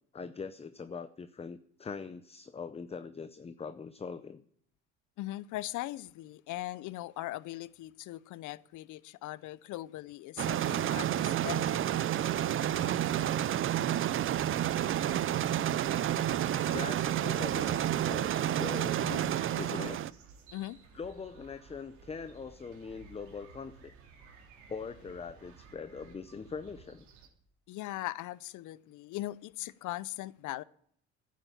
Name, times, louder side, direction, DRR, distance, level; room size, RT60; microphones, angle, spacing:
voice 1, 0.1-4.4 16.7-18.3 18.6-19.0 19.6-20.2 20.9-23.9 24.7-27.1, left 5 dB, 20° left, 0.6 m, -42 dB
voice 2, 5.2-11.9 19.0-19.6 20.5-20.8 27.7-30.6, left 16 dB, 65° left, 0.7 m, -40 dB
sound 1, 10.4-20.1, right 11 dB, 40° right, 0.5 m, -30 dB
sound 2, 11.2-27.3, right 6 dB, 85° right, 3.2 m, -56 dB
sound 3, 11.8-18.0, right 1 dB, 20° right, 4.2 m, -58 dB
11.0 x 9.5 x 8.3 m
supercardioid pair, 75°, 33 cm